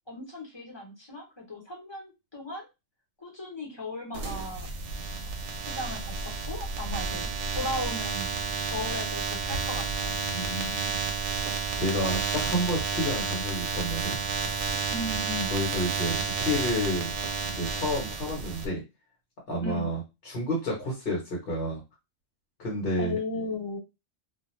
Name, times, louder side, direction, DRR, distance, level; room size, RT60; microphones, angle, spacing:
voice 1, 0.1-2.7 3.2-4.7 5.6-6.1 6.5-8.3 8.6-10.1 14.9-15.5 19.6-19.9 23.0-23.8, left 2 dB, 25° left, -1 dB, 0.9 m, -36 dB
sound 1, 4.1-18.7, right 4 dB, 70° right, 0.9 m, -31 dB
voice 2, 10.3-11.1 11.8-14.2 15.5-17.1 17.5-18.8 19.5-21.8 22.6-23.2, equal, 50° left, -2 dB, 1.1 m, -30 dB
2.4 x 2.2 x 3.1 m, 0.24 s
omnidirectional pair, 1.3 m